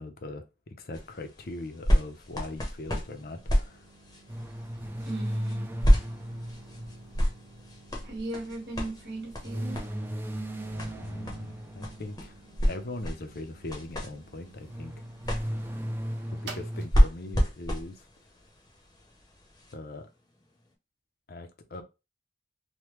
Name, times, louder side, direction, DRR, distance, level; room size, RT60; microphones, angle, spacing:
voice 1, 0.0-3.9 11.0-12.3 12.6-15.0 16.3-18.1 19.7-20.1 21.3-21.8, left 2 dB, 60° left, 0.6 m, -40 dB
sound 1, 0.9-19.7 20.4-20.5, equal, 20° left, 0.7 m, -30 dB
sound 2, 1.5-19.0, right 3 dB, 85° right, 0.9 m, -53 dB
sound 3, 4.3-7.8 9.4-12.5 14.6-16.9, equal, 10° right, 0.3 m, -36 dB
voice 2, 5.0-5.7 8.0-9.8, right 2 dB, 70° right, 1.4 m, -37 dB
3.3 x 2.1 x 3.0 m
head